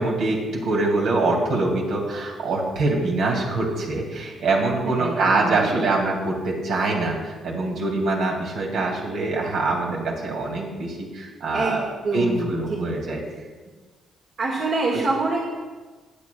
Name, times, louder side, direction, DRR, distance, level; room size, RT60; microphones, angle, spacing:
voice 1, 0.0-11.9 12.1-13.2 14.9-15.0, right 2 dB, 75° right, -1 dB, 2.3 m, -24 dB
voice 2, 4.8-5.8 9.9-10.0 11.5-12.5 14.4-15.4, right 3 dB, 55° right, -3 dB, 1.7 m, -26 dB
19.5 x 7.1 x 2.3 m, 1.4 s
cardioid pair, 90°, 0 cm